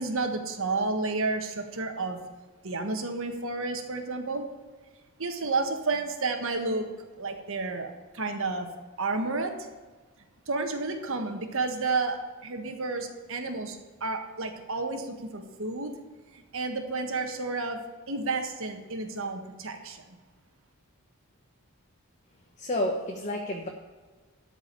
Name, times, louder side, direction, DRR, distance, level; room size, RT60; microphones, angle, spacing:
voice 1, 0.0-2.2 2.6-4.5 5.2-6.9 7.2-8.7 9.0-9.5 10.5-15.9 16.3-17.8 18.1-20.0, right 3 dB, 65° right, 5 dB, 1.5 m, -31 dB
voice 2, 22.6-23.7, left 1 dB, 35° left, 1 dB, 1.1 m, -30 dB
13.0 x 5.0 x 8.4 m, 1.4 s
head